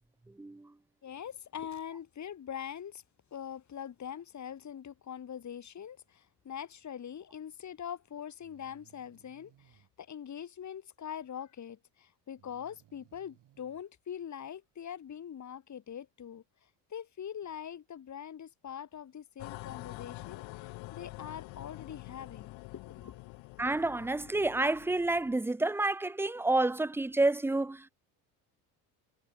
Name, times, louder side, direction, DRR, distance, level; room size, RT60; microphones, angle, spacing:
voice 1, 0.4-0.7 23.6-27.9, right 2 dB, 5° right, 0.4 m, -29 dB
voice 2, 1.0-3.0 3.3-16.4 16.9-23.2, left 9 dB, 40° left, 2.7 m, -43 dB
Breathing, 7.5-7.6 8.4-9.9 12.4-13.8, right 12 dB, 60° right, 6.6 m, -63 dB
sound 1, 19.4-25.4, left 21 dB, 75° left, 1.9 m, -46 dB
cardioid pair, 100°, 45 cm